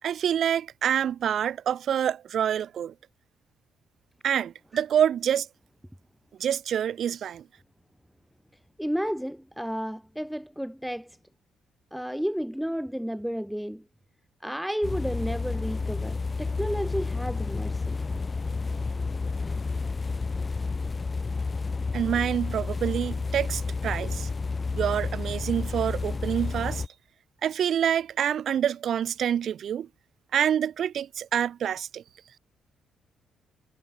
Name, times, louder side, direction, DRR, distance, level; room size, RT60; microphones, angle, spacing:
voice 1, 0.0-2.9 4.2-5.5 6.4-7.5 21.9-24.3 24.7-26.8 27.4-29.9 30.3-32.0, right 9 dB, 65° right, 3.9 m, -27 dB
voice 2, 8.8-11.2 11.9-13.8 14.4-18.0, equal, ahead, 3.0 m, -32 dB
sound 1, 14.8-26.9, left 4 dB, 35° left, 2.4 m, -30 dB
hypercardioid pair, 50°, 0 cm